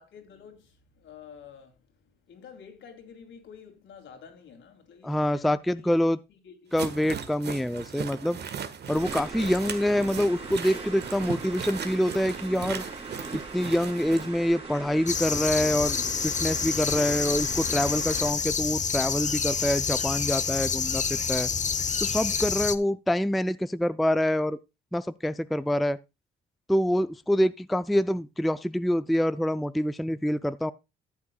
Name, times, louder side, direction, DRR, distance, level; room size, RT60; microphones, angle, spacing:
voice 1, 0.0-6.7, left 7 dB, 70° left, 3.0 m, -50 dB
voice 2, 5.0-6.2 6.7-8.4 8.9-12.8 13.3-16.0 16.2-21.5 22.0-24.6 24.9-26.0 26.7-30.7, equal, ahead, 0.4 m, -26 dB
sound 1, 6.7-14.3, right 7 dB, 55° right, 1.5 m, -38 dB
sound 2, 9.0-18.3, right 3 dB, 30° right, 3.6 m, -40 dB
sound 3, 15.1-22.7, left 6 dB, 35° left, 0.9 m, -28 dB
13.5 x 8.4 x 2.3 m
cardioid pair, 90°, 20 cm